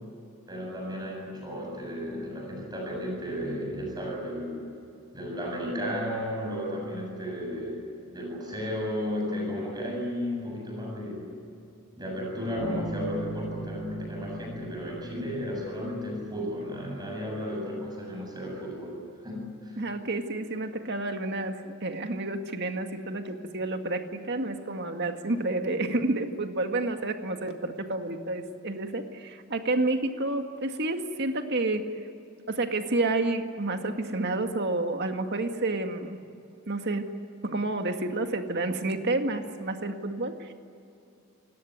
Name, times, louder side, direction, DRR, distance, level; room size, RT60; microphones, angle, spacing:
voice 1, 0.5-4.7 5.1-11.4 12.0-19.0 19.2-19.8, equal, 20° right, -1 dB, 7.7 m, -34 dB
Bass guitar, 12.6-16.4, right 2 dB, 75° right, 4.2 m, -39 dB
voice 2, 19.8-31.9 32.5-36.2 36.7-37.1 37.4-40.5, right 2 dB, 50° right, 5 dB, 2.0 m, -30 dB
29.0 x 17.5 x 9.6 m, 2.7 s
head